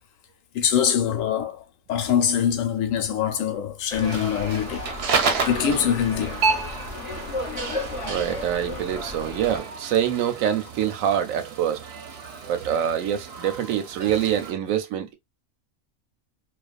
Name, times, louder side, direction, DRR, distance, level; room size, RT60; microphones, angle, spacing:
voice 1, 0.5-4.9 5.5-6.4, left 8 dB, 75° left, 1.0 m, -24 dB
sound 1, 3.9-9.6, left 2 dB, 30° left, 0.7 m, -34 dB
sound 2, 4.0-14.5, right 4 dB, 60° right, 0.8 m, -31 dB
voice 2, 7.8-11.9 12.4-15.1, right 10 dB, 85° right, 1.0 m, -25 dB
2.4 x 2.3 x 2.4 m
omnidirectional pair, 1.4 m